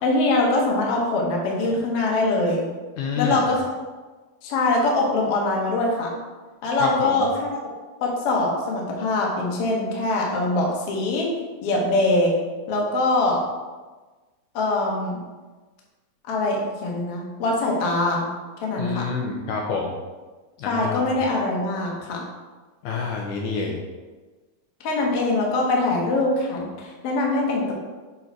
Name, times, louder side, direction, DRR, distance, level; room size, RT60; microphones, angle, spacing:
voice 1, 0.0-2.6 3.2-3.7 4.4-6.1 6.6-7.3 8.0-11.3 11.6-12.3 12.7-13.4 14.5-15.1 16.3-18.2 18.6-19.0 20.6-22.2 24.8-27.7, left 2 dB, 60° left, -2 dB, 1.5 m, -23 dB
voice 2, 3.0-3.5 6.8-7.2 18.8-20.0 20.6-21.1 22.8-23.8, left 4 dB, 80° left, 0 dB, 1.8 m, -28 dB
6.9 x 4.1 x 4.5 m, 1.3 s
omnidirectional pair, 4.3 m